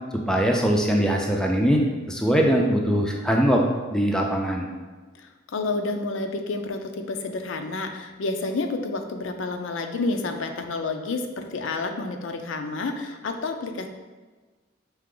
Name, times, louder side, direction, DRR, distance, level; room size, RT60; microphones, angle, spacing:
voice 1, 0.3-3.6 3.9-4.7, equal, 5° left, 0 dB, 0.3 m, -21 dB
voice 2, 5.1-13.9, left 3 dB, 80° left, 5 dB, 0.4 m, -29 dB
4.7 x 2.8 x 3.7 m, 1.3 s
head